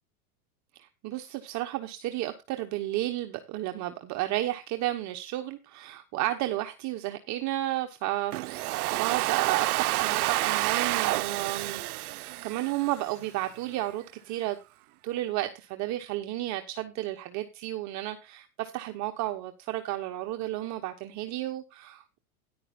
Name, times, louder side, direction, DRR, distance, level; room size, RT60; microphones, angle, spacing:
voice 1, 0.8-14.6 15.0-22.2, right 15 dB, 40° right, 1.0 m, -32 dB
Domestic sounds home sounds, 8.3-13.3, right 18 dB, 70° right, 0.7 m, -29 dB
13.5 x 10.5 x 2.5 m
supercardioid pair, 125°, 45 cm